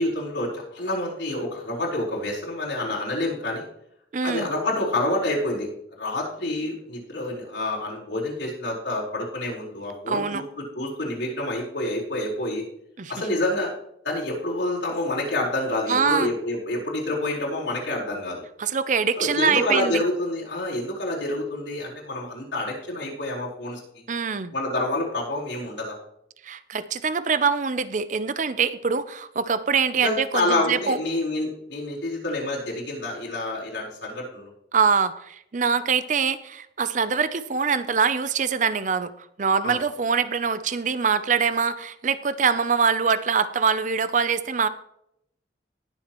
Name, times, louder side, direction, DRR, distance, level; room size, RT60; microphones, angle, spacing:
voice 1, 0.0-3.6 4.2-5.7 6.0-12.6 13.1-13.7 14.0-18.4 19.2-23.8 24.5-26.0 30.0-34.5 39.6-39.8, left 1 dB, 80° left, -4 dB, 4.4 m, -28 dB
voice 2, 4.1-4.5 10.1-10.4 13.0-13.1 15.9-16.3 18.6-20.0 24.1-24.5 26.4-31.0 34.7-44.7, right 6 dB, 45° right, 14 dB, 0.6 m, -24 dB
19.5 x 7.4 x 3.0 m, 0.77 s
head